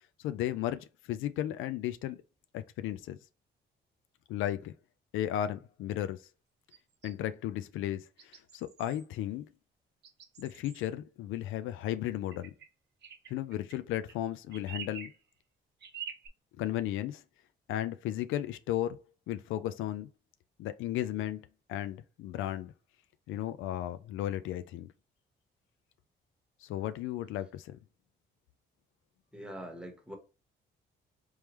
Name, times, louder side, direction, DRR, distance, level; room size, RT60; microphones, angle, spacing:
voice 1, 0.2-2.2 2.5-3.2 4.3-4.7 5.1-6.2 7.0-9.5 10.4-12.5 13.3-15.1 16.6-17.2 17.7-19.0 19.3-20.1 20.6-21.4 21.7-22.7 23.3-24.9 26.6-27.8, left 12 dB, 85° left, 0.4 m, -34 dB
sound 1, 6.7-7.2 8.2-9.1 10.0-10.9 12.3-12.7 13.0-14.2 14.5-15.2 15.8-16.3, right 8 dB, 60° right, 0.9 m, -46 dB
voice 2, 29.3-30.2, equal, 5° right, 1.2 m, -43 dB
3.5 x 3.1 x 3.1 m
cardioid pair, 90°, 20 cm